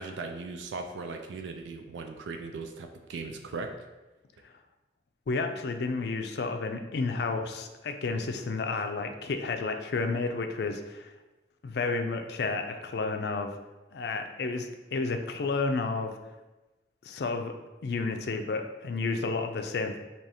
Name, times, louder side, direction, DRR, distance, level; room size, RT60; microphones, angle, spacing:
voice 1, 0.0-3.8, right 3 dB, 90° right, 5 dB, 0.4 m, -38 dB
voice 2, 5.3-11.1 11.6-13.5 13.9-16.2 17.0-17.6 17.8-20.0, left 3 dB, 65° left, 5 dB, 0.4 m, -31 dB
4.7 x 2.9 x 2.8 m, 1.1 s
head